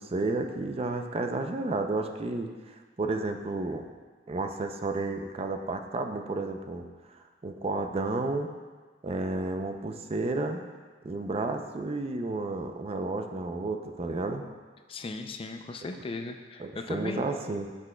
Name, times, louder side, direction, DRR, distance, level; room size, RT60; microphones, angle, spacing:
voice 1, 0.0-2.5 3.0-3.8 4.3-6.8 7.4-8.5 9.0-10.6 11.0-14.4 16.6-17.7, right 2 dB, 35° right, 5 dB, 0.4 m, -31 dB
voice 2, 14.9-17.3, left 3 dB, 30° left, 6 dB, 0.4 m, -37 dB
10.5 x 6.1 x 2.2 m, 1.4 s
head